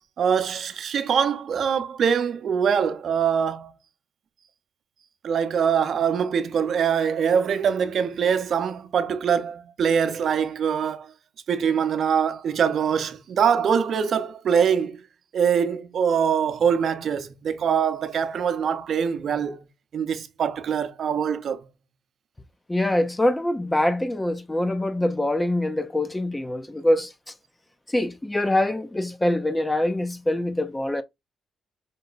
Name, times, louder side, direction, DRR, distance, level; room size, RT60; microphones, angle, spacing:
voice 1, 0.2-3.7 5.2-11.1 11.5-15.0 15.3-19.6 19.9-21.6, right 7 dB, 60° right, 0.7 m, -23 dB
voice 2, 22.7-27.1 27.9-31.0, left 1 dB, 15° left, 0.5 m, -24 dB
5.3 x 2.2 x 3.9 m
cardioid pair, 90°, 0 cm